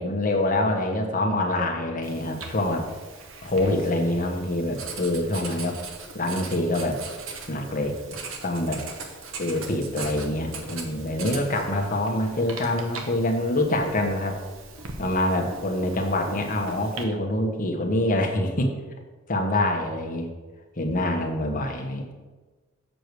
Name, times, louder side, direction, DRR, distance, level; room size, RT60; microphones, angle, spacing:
voice 1, 0.0-2.8 3.4-5.8 6.1-7.0 7.5-7.9 8.4-8.8 9.4-14.4 15.0-18.7 19.3-20.3 20.8-22.1, left 1 dB, 45° left, 2 dB, 1.3 m, -25 dB
Writing, 2.0-17.0, right 4 dB, 85° right, 1.2 m, -40 dB
7.6 x 4.9 x 6.8 m, 1.3 s
head